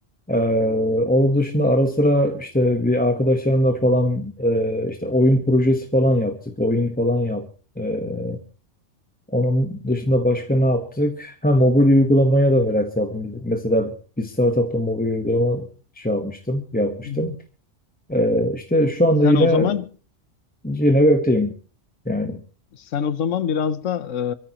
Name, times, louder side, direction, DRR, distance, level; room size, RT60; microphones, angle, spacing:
voice 1, 0.3-7.5 7.8-8.4 9.3-15.7 16.0-17.3 18.1-19.7 20.6-21.5 22.1-22.4, equal, 10° left, 1.0 m, -20 dB
voice 2, 17.0-17.4 19.2-19.8 22.7-24.3, left 7 dB, 80° left, 1.2 m, -24 dB
25.5 x 13.5 x 2.9 m
omnidirectional pair, 1.3 m